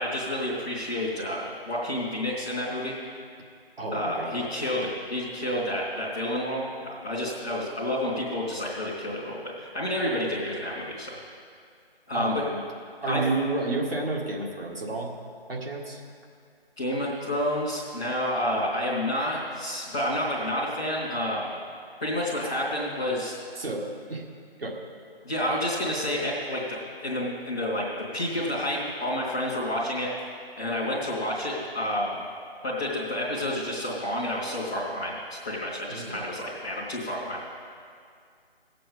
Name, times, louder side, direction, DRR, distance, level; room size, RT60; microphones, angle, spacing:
voice 1, 0.0-3.2 3.9-11.2 12.1-12.4 13.0-13.2 16.8-21.5 22.0-23.5 25.2-27.8 28.1-30.1 30.6-32.2 32.6-35.2 35.4-37.4, left 1 dB, 5° left, -11 dB, 0.7 m, -29 dB
voice 2, 3.8-4.5 12.1-12.6 13.0-15.1 15.5-16.0 23.6-24.2 24.6-24.8 35.9-36.2, right 2 dB, 65° right, -2 dB, 2.1 m, -31 dB
18.0 x 7.7 x 5.3 m, 2.2 s
figure-of-eight pair, 155°, 31 cm